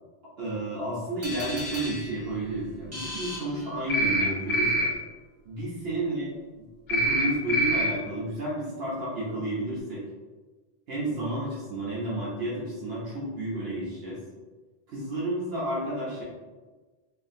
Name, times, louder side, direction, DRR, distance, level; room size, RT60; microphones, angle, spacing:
voice 1, 0.4-4.9 5.5-6.3 6.9-10.0 10.9-14.2 14.9-16.2, right 1 dB, 75° right, -7 dB, 0.9 m, -31 dB
sound 1, 1.2-4.3, left 1 dB, 20° right, 0.6 m, -38 dB
sound 2, 3.9-4.2 4.5-4.8 6.9-7.2 7.5-7.8, right 1 dB, 90° left, 1.0 m, -24 dB
2.6 x 2.5 x 2.5 m, 1.3 s
omnidirectional pair, 1.1 m